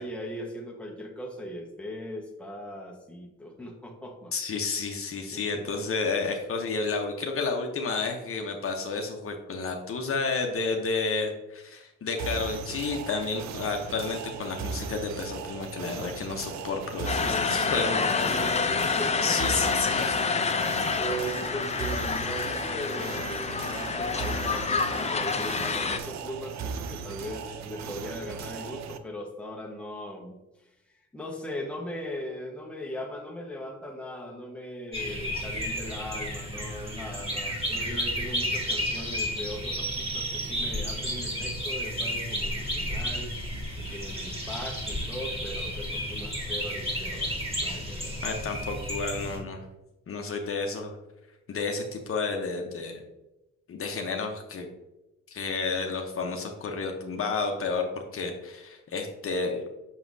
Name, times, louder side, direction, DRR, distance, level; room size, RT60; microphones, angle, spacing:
voice 1, 0.0-4.3 5.3-5.6 17.2-19.7 20.3-30.4 31.1-43.3 43.8-48.2 49.4-49.5, equal, 5° left, 0 dB, 1.2 m, -39 dB
voice 2, 4.3-18.0 19.2-20.2 48.2-49.6 50.1-50.9 51.5-53.0 53.7-54.7 55.3-59.6, left 4 dB, 45° left, 2 dB, 0.9 m, -31 dB
sound 1, 12.2-29.0, right 6 dB, 65° right, 0.6 m, -37 dB
sound 2, 17.1-26.0, left 5 dB, 20° left, 0.5 m, -28 dB
sound 3, 34.9-49.4, equal, 20° right, 2.1 m, -32 dB
6.2 x 5.6 x 2.7 m, 0.97 s
cardioid pair, 90°, 30 cm